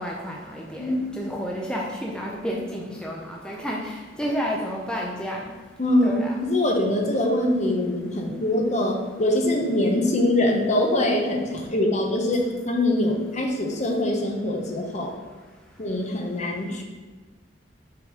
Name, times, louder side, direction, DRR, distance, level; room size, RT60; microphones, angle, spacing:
voice 1, 0.0-3.9 4.2-5.4 6.0-6.4, equal, 5° left, -2 dB, 0.6 m, -30 dB
voice 2, 0.8-1.2 5.8-6.2 6.4-15.1 15.8-16.8, left 1 dB, 40° left, 1 dB, 0.9 m, -23 dB
5.7 x 4.0 x 4.9 m, 1.4 s
head